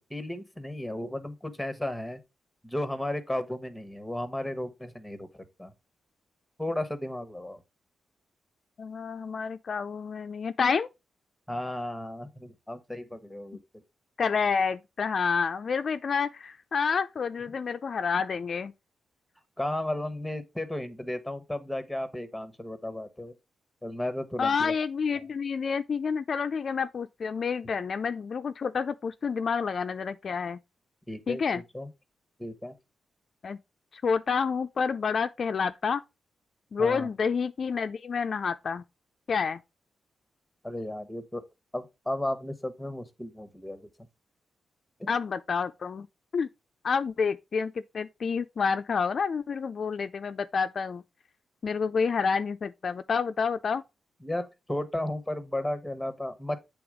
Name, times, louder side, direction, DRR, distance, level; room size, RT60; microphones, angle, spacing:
voice 1, 0.1-2.2 2.6-5.7 6.6-7.6 11.5-13.6 19.6-23.3 23.8-24.7 25.1-25.2 31.1-31.4 31.7-31.9 32.4-32.8 36.8-37.1 40.6-41.4 41.7-43.8 45.0-45.1 54.2-56.6, left 1 dB, 5° left, 1.0 m, -34 dB
voice 2, 8.8-10.9 14.2-18.7 24.4-30.6 31.3-31.6 33.4-33.6 33.9-36.0 36.7-38.8 39.3-39.6 45.1-46.1 46.3-46.5 46.8-51.0 51.6-53.8, left 5 dB, 50° left, 0.4 m, -29 dB
7.8 x 3.5 x 4.8 m
cardioid pair, 105°, 0 cm